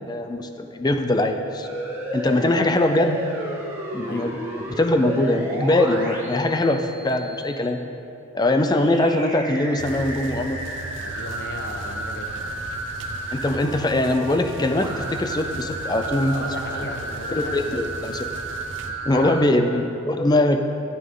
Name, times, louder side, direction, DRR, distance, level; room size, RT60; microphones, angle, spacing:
voice 1, 0.1-1.7 2.1-3.2 3.9-4.4 4.7-7.8 8.3-10.7 13.3-16.3 16.8-16.9 17.3-18.3 19.1-20.6, left 1 dB, 20° left, 7 dB, 0.4 m, -22 dB
sound 1, 1.6-7.6 8.7-19.4, right 1 dB, 15° right, 1.7 m, -33 dB
voice 2, 4.0-4.4 11.0-12.6 16.3-17.8 18.8-19.3, left 1 dB, 50° left, 4 dB, 1.0 m, -36 dB
sound 2, 9.8-18.9, right 2 dB, 60° right, 0.7 m, -38 dB
13.0 x 9.8 x 3.7 m, 2.8 s
head